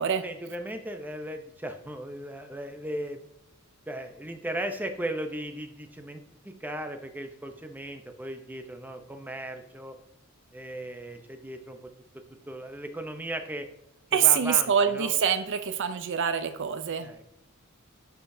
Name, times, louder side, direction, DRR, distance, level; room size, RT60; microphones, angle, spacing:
voice 1, 0.2-3.3 3.9-10.0 10.5-11.9 12.5-13.7 14.1-15.1 17.0-17.3, right 1 dB, 10° right, 6 dB, 0.6 m, -37 dB
voice 2, 14.1-17.1, right 8 dB, 55° right, 11 dB, 0.5 m, -25 dB
10.0 x 6.8 x 2.7 m, 0.82 s
head